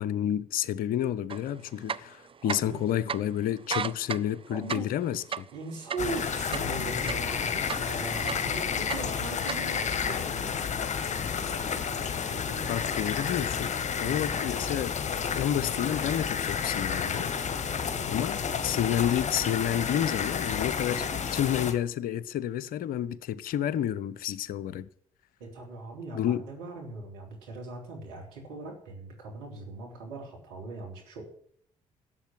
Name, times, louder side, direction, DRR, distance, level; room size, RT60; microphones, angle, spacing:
voice 1, 0.0-5.5 12.7-13.7 14.0-15.0 15.3-17.3 18.1-24.9 26.1-26.4, left 10 dB, 65° left, 0.7 m, -30 dB
sound 1, 1.3-1.4 1.8-2.8 3.1-3.2 3.6-7.3 7.7-8.5 8.8-9.6, right 7 dB, 35° right, 0.6 m, -34 dB
voice 2, 2.4-2.8 4.5-4.9 5.5-12.8 14.0-14.3 18.0-18.3 25.4-31.2, right 3 dB, 75° right, 3.6 m, -40 dB
sound 2, 6.0-21.7, left 6 dB, 45° left, 1.8 m, -31 dB
12.5 x 7.7 x 9.6 m
figure-of-eight pair, 40°, 16 cm